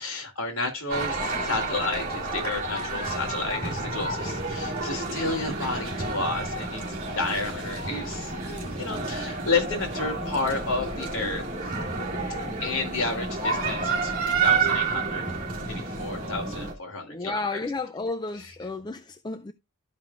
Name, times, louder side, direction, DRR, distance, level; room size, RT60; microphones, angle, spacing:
voice 1, 0.0-6.8 7.1-11.7 12.6-15.4 15.7-17.6, left 3 dB, 60° left, 3.1 m, -31 dB
sound 1, 0.9-16.7, right 4 dB, 40° right, 2.5 m, -30 dB
sound 2, 4.2-16.7, right 2 dB, 55° right, 2.4 m, -39 dB
voice 2, 17.0-19.5, left 3 dB, 20° left, 0.4 m, -33 dB
12.5 x 5.8 x 2.4 m
head